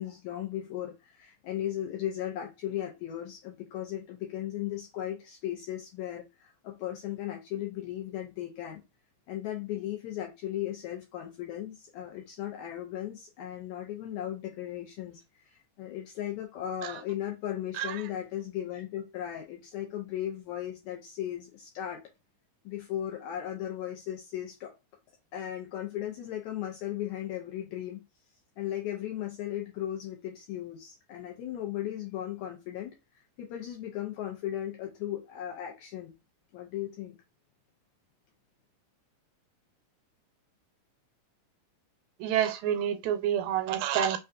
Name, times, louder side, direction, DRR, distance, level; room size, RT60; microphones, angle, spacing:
voice 1, 0.0-8.8 9.3-22.0 22.6-24.7 25.3-28.0 28.6-36.1 36.5-37.2, left 12 dB, 80° left, 1.7 m, -36 dB
voice 2, 42.2-44.2, right 10 dB, 90° right, 2.4 m, -28 dB
5.5 x 2.3 x 2.4 m
omnidirectional pair, 3.9 m